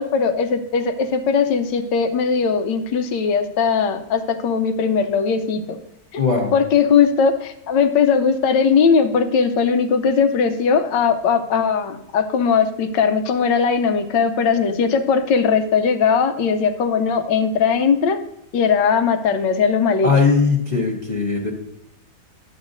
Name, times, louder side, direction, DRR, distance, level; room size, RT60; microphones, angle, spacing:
voice 1, 0.0-5.8 6.1-6.2 6.5-18.2 18.5-20.1, left 6 dB, 85° left, 8 dB, 1.4 m, -19 dB
voice 2, 6.2-6.5 20.0-21.5, left 4 dB, 30° left, -2 dB, 0.9 m, -19 dB
10.5 x 8.0 x 2.6 m, 0.78 s
omnidirectional pair, 1.9 m